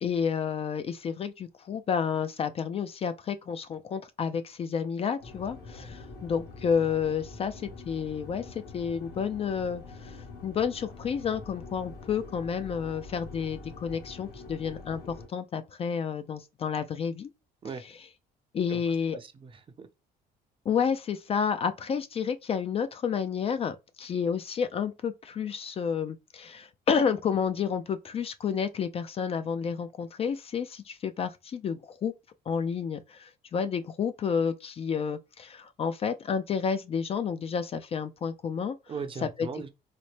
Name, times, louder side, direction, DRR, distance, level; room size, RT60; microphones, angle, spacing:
voice 1, 0.0-17.3 18.5-19.2 20.7-32.1 32.5-38.8 39.4-39.5, left 6 dB, 35° left, 0.3 m, -30 dB
sound 1, 5.2-15.3, left 3 dB, 70° left, 1.5 m, -45 dB
voice 2, 19.1-19.9 38.9-39.7, right 5 dB, 30° right, 0.5 m, -38 dB
4.0 x 2.1 x 3.2 m
cardioid pair, 110°, 17 cm